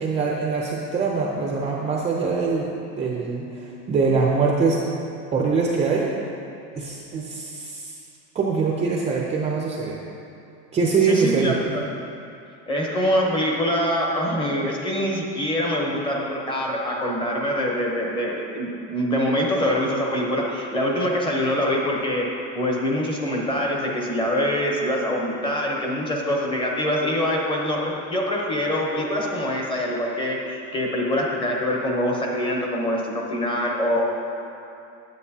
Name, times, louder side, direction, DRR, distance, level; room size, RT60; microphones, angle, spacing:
voice 1, 0.0-4.8 5.3-6.1 6.8-7.9 8.3-10.0 10.7-11.7, right 4 dB, 20° right, -2 dB, 0.4 m, -23 dB
voice 2, 11.0-11.8 12.7-22.2 22.5-34.0, equal, 15° left, -1 dB, 0.8 m, -24 dB
9.1 x 7.9 x 2.8 m, 2.6 s
supercardioid pair, 150°, 37 cm